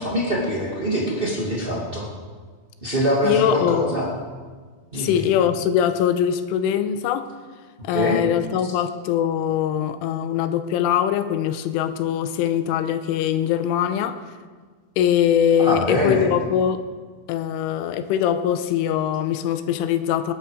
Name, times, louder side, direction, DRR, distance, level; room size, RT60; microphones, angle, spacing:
voice 1, 0.0-2.1 2.8-4.1 4.9-5.2 7.9-8.2 15.6-16.3, equal, 40° right, -4 dB, 0.8 m, -23 dB
voice 2, 3.2-3.9 5.0-7.3 7.8-14.2 15.0-16.8 17.3-20.3, left 9 dB, 85° left, 10 dB, 3.2 m, -22 dB
20.0 x 11.0 x 5.1 m, 1.5 s
omnidirectional pair, 5.7 m